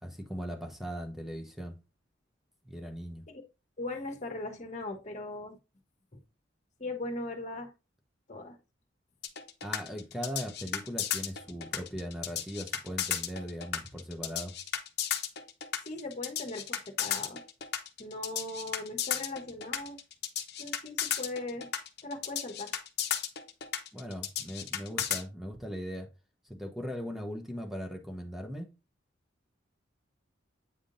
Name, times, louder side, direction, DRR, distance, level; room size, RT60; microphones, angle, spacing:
voice 1, 0.0-1.7 2.6-3.2 9.6-14.5 23.9-26.1 26.4-28.7, equal, ahead, 1.0 m, -39 dB
voice 2, 3.8-5.6 6.1-6.2 6.8-7.7 8.3-8.6 15.8-17.4 18.0-20.0 20.6-21.7 22.0-22.7, left 2 dB, 40° left, 1.2 m, -39 dB
sound 1, 9.2-25.2, left 9 dB, 55° left, 0.9 m, -34 dB
8.5 x 3.7 x 3.9 m
head